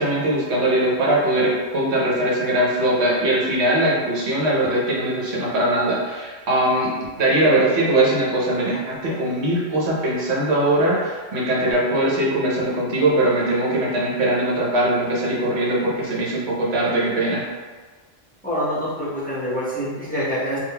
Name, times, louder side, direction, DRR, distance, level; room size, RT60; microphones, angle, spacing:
voice 1, 0.0-6.9 7.2-17.4, right 1 dB, 65° right, -4 dB, 1.2 m, -21 dB
voice 2, 18.4-20.6, equal, 10° left, -8 dB, 0.7 m, -26 dB
3.7 x 2.5 x 3.3 m, 1.4 s
omnidirectional pair, 1.2 m